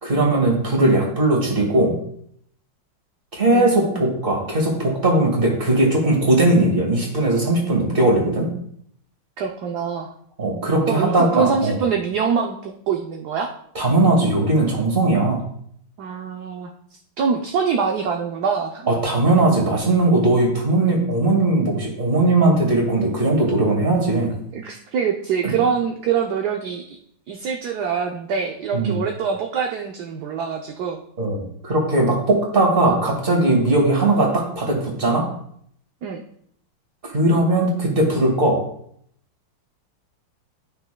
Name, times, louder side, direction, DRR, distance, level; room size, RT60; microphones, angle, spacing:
voice 1, 0.0-1.9 3.3-8.5 10.4-11.8 13.8-15.4 18.9-24.3 25.4-25.5 28.7-29.0 31.2-35.3 37.1-38.6, right 2 dB, 30° right, 0 dB, 2.0 m, -19 dB
voice 2, 3.5-4.0 9.4-10.1 10.9-13.5 16.0-16.7 17.2-18.9 24.5-26.8 27.3-31.0 36.0-36.2, right 6 dB, 65° right, 3 dB, 1.1 m, -24 dB
12.0 x 5.9 x 2.2 m, 0.66 s
omnidirectional pair, 2.1 m